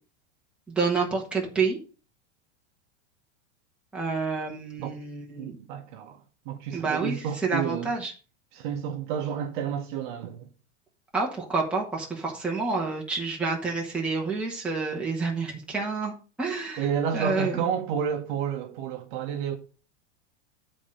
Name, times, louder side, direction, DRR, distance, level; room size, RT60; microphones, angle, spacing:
voice 1, 0.7-1.8 3.9-5.6 6.7-8.1 11.1-16.8 17.1-17.6, right 4 dB, 5° right, 1.5 m, -28 dB
voice 2, 5.4-7.9 8.5-10.5 16.8-19.6, right 8 dB, 45° right, 1.2 m, -30 dB
9.6 x 4.4 x 6.4 m
supercardioid pair, 170°, 36 cm